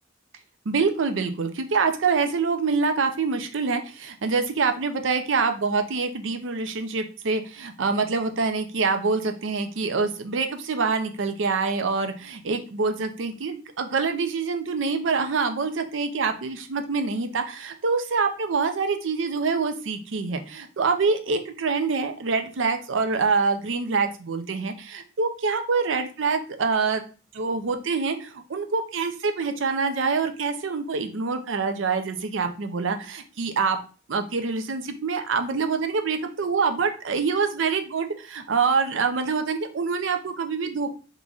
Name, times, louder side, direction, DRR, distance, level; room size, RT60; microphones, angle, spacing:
voice 1, 0.7-27.0 27.3-33.8 34.1-40.9, right 4 dB, 80° right, 7 dB, 0.5 m, -25 dB
3.7 x 3.1 x 2.4 m, 0.36 s
head